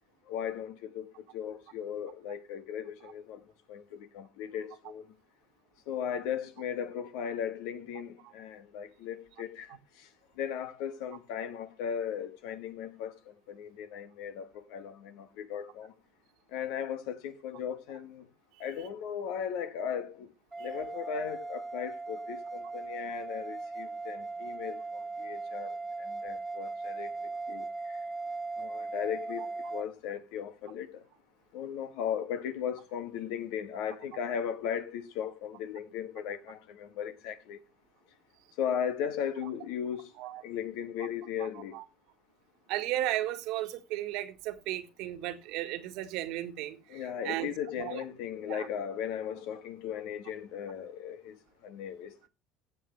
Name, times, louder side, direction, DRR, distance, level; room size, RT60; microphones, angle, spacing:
voice 1, 0.3-3.4 3.7-5.1 5.9-10.1 10.4-15.9 16.5-18.3 18.6-20.3 20.6-27.1 27.5-28.0 28.6-31.0 31.5-37.6 38.6-40.1 40.4-41.8 46.9-52.3, left 8 dB, 75° left, 1.4 m, -37 dB
sound 1, 20.5-29.8, right 3 dB, 10° right, 1.6 m, -38 dB
voice 2, 42.7-47.5 47.8-48.0 48.5-48.7, right 14 dB, 70° right, 1.6 m, -35 dB
15.0 x 7.4 x 3.3 m
hypercardioid pair, 75°, 0 cm